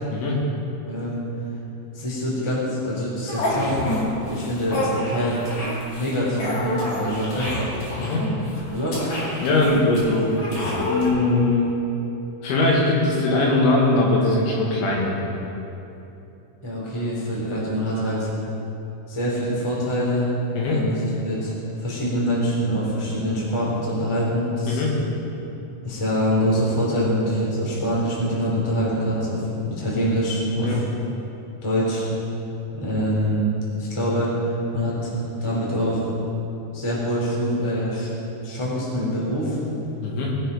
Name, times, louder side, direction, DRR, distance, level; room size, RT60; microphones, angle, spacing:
voice 1, 0.8-1.2 1.9-3.8 4.2-5.5 6.0-7.5 8.7-9.0 16.6-18.3 19.1-20.3 20.6-21.5 21.8-24.8 25.8-30.8 31.6-32.0 32.7-33.4 33.8-36.1 36.7-38.1 38.4-39.6, equal, 10° left, -6 dB, 2.3 m, -25 dB
sound 1, 3.3-4.0 4.3-11.1, left 1 dB, 40° left, 3.1 m, -28 dB
voice 2, 9.4-10.3 10.8-11.7 12.4-15.2 20.5-20.8 24.7-24.9 30.6-30.8 40.0-40.3, left 2 dB, 70° left, -3 dB, 4.0 m, -21 dB
20.5 x 7.2 x 5.3 m, 2.9 s
omnidirectional pair, 5.8 m